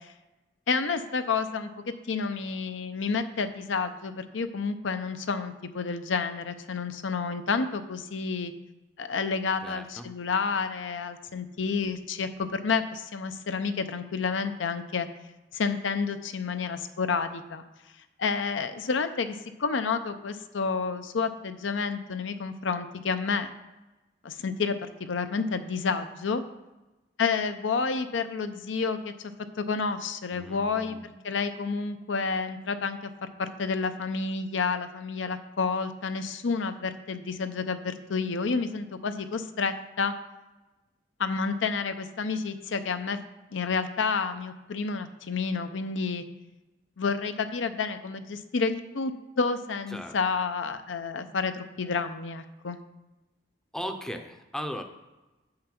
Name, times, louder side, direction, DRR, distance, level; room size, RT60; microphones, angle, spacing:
voice 1, 0.7-1.7 2.1-8.5 9.0-15.1 15.5-17.6 18.2-23.5 24.2-26.4 27.2-29.1 29.6-33.1 33.4-40.1 41.2-43.2 43.5-46.2 47.0-49.1 49.4-52.8, left 5 dB, 80° left, 9 dB, 0.6 m, -30 dB
voice 2, 9.6-10.1 30.3-31.0 49.9-50.2 53.7-54.8, equal, 5° left, 5 dB, 0.6 m, -37 dB
7.6 x 5.8 x 5.9 m, 1.1 s
head